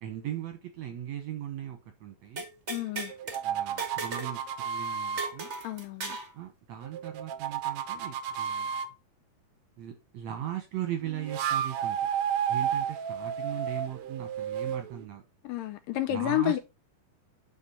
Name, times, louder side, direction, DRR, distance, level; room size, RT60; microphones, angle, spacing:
voice 1, 0.0-2.4 3.4-5.5 6.3-8.8 9.8-12.1 12.5-15.2 16.1-16.6, right 11 dB, 65° right, 1.9 m, -38 dB
sound 1, 2.4-3.4 3.8-4.3 4.6-4.7 5.2-6.3, right 3 dB, 50° right, 0.8 m, -37 dB
voice 2, 2.7-3.1 5.6-6.2 15.4-16.6, left 14 dB, 75° left, 2.2 m, -30 dB
sound 2, 3.1-5.3 6.8-8.9 11.0-15.1, right 8 dB, 80° right, 1.6 m, -32 dB
8.8 x 5.4 x 4.3 m
omnidirectional pair, 4.2 m